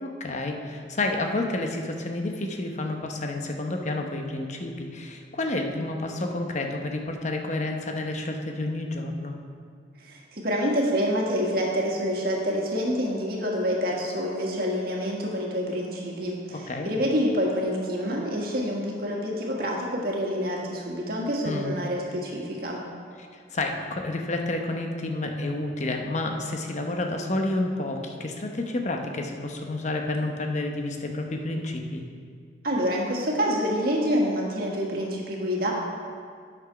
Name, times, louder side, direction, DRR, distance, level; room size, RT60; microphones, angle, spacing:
voice 1, 0.0-9.3 16.5-16.9 21.4-21.7 23.5-32.0, left 2 dB, 40° left, 3 dB, 0.8 m, -30 dB
voice 2, 10.0-22.8 32.6-35.7, equal, 55° right, -2 dB, 1.6 m, -27 dB
9.1 x 6.1 x 5.7 m, 2.1 s
head